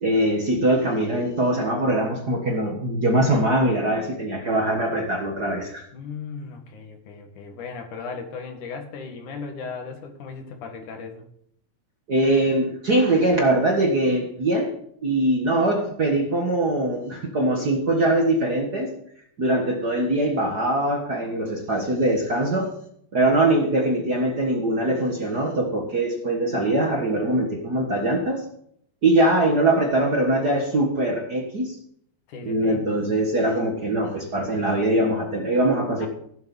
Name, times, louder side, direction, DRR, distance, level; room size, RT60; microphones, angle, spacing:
voice 1, 0.0-5.8 12.1-14.7 15.0-18.9 19.4-22.7 23.1-28.4 29.0-31.8 32.4-36.1, right 1 dB, 40° right, 2 dB, 1.6 m, -22 dB
voice 2, 5.9-11.2 23.2-24.0 32.3-32.9 36.0-36.1, left 5 dB, 80° left, 5 dB, 3.3 m, -37 dB
16.0 x 7.9 x 5.4 m, 0.70 s
omnidirectional pair, 3.5 m